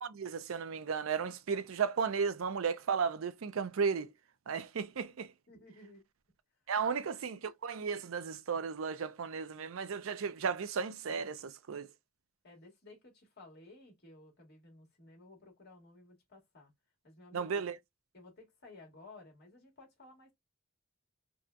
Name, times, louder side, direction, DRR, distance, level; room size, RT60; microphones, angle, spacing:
voice 1, 0.0-4.1 4.5-5.3 6.7-11.9 17.3-17.8, right 6 dB, 85° right, 0.5 m, -34 dB
voice 2, 5.5-6.0 6.7-7.1 12.4-16.7 17.0-17.6 18.1-20.3, left 2 dB, 55° left, 1.8 m, -56 dB
4.1 x 2.3 x 2.4 m
head